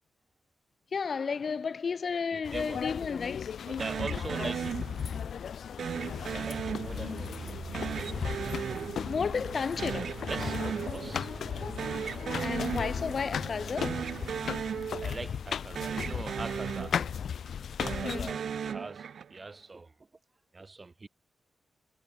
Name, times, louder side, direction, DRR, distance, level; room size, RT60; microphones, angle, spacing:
voice 1, 0.9-3.6 9.0-10.2 12.4-14.0 18.0-18.3, left 5 dB, 45° left, 0.4 m, -32 dB
voice 2, 2.3-2.8 3.7-5.1 6.3-8.6 10.0-11.9 12.2-12.6 14.9-17.0 17.5-20.1 20.5-21.1, right 3 dB, 25° right, 1.9 m, -43 dB
sound 1, 2.4-18.3, left 7 dB, 70° left, 2.2 m, -36 dB
sound 2, 3.8-5.3 5.8-7.3 7.7-9.5 9.8-11.3 11.6-13.3 13.7-15.5 15.8-17.3 17.7-19.5, right 7 dB, 70° right, 1.6 m, -36 dB
sound 3, 6.3-14.4, right 5 dB, 50° right, 1.0 m, -45 dB
wide cardioid pair, 145°, 0 cm